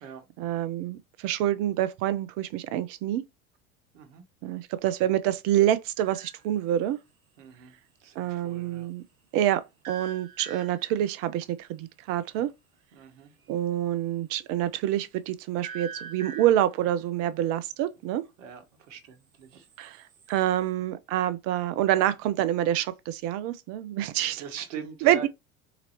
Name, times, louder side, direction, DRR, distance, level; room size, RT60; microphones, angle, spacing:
voice 1, 0.4-3.2 4.4-7.0 8.2-9.0 9.3-12.5 13.5-18.2 19.8-24.4 25.0-25.3, right 12 dB, 35° right, 0.4 m, -27 dB
sound 1, 6.0-6.5 9.8-11.1 15.6-16.8 19.5-20.4, right 6 dB, 75° right, 0.8 m, -43 dB
voice 2, 7.4-7.7 8.0-8.9 12.9-13.3 18.4-19.7 24.4-25.3, right 6 dB, 60° right, 1.1 m, -42 dB
4.0 x 3.8 x 2.9 m
figure-of-eight pair, 70°, 42 cm